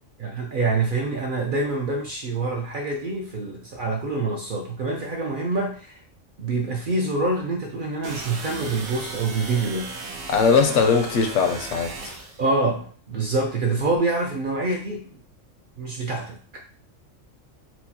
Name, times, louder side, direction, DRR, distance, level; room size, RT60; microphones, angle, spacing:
voice 1, 0.2-6.0 6.4-9.9 12.4-15.2 15.8-16.6, right 3 dB, 60° right, 0 dB, 0.5 m, -26 dB
sound 1, 8.0-12.4, right 3 dB, 85° right, 1.2 m, -36 dB
voice 2, 10.3-12.2, left 5 dB, 70° left, 5 dB, 0.9 m, -20 dB
4.4 x 2.1 x 2.7 m, 0.41 s
omnidirectional pair, 1.3 m